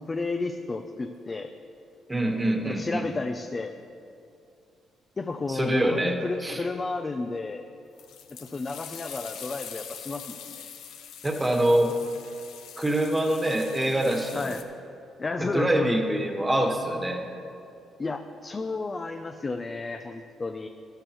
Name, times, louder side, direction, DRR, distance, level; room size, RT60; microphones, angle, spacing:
voice 1, 0.0-1.5 2.6-3.7 5.2-7.7 8.4-10.7 14.3-14.6 15.2-16.0 18.0-20.7, left 3 dB, 30° left, 6 dB, 0.5 m, -32 dB
voice 2, 2.1-3.1 5.5-6.6 11.2-11.9 12.8-14.5 15.4-17.2, right 1 dB, 15° right, 2 dB, 1.4 m, -25 dB
sound 1, 8.0-14.6, left 8 dB, 85° left, 0.8 m, -43 dB
13.0 x 12.5 x 3.1 m, 2.5 s
cardioid pair, 90°, 0 cm